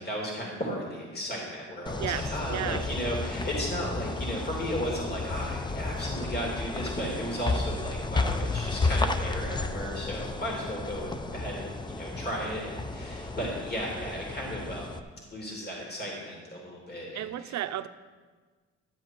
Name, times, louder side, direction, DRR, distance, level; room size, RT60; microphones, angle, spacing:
voice 1, 0.0-15.0 15.3-17.6, equal, 35° left, -2 dB, 2.9 m, -35 dB
sound 1, 1.9-15.0, left 3 dB, 15° left, 0.5 m, -32 dB
voice 2, 2.0-2.9 17.1-17.9, right 12 dB, 65° right, 12 dB, 0.6 m, -33 dB
sound 2, 3.5-13.7, right 3 dB, 15° right, 1.1 m, -48 dB
12.5 x 7.6 x 4.6 m, 1.4 s
cardioid pair, 90°, 30 cm